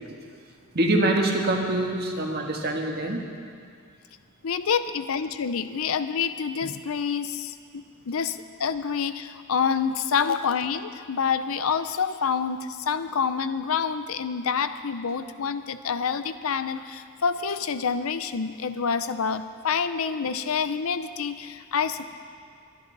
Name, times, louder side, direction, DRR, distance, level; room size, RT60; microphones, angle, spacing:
voice 1, 0.1-0.4 0.7-3.2 20.3-20.4, right 1 dB, 50° right, 1 dB, 1.6 m, -25 dB
voice 2, 4.4-22.1, left 6 dB, 75° left, 11 dB, 0.6 m, -27 dB
22.0 x 10.5 x 4.0 m, 2.3 s
head